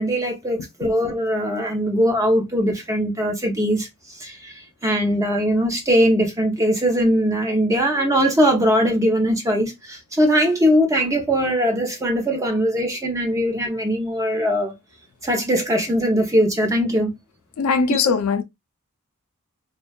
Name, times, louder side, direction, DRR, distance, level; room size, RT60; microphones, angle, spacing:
voice 1, 0.0-14.7 15.2-17.1 17.9-18.0, equal, 15° right, 0.5 m, -21 dB
voice 2, 17.6-18.4, left 5 dB, 75° left, 0.4 m, -20 dB
2.6 x 2.2 x 2.2 m
head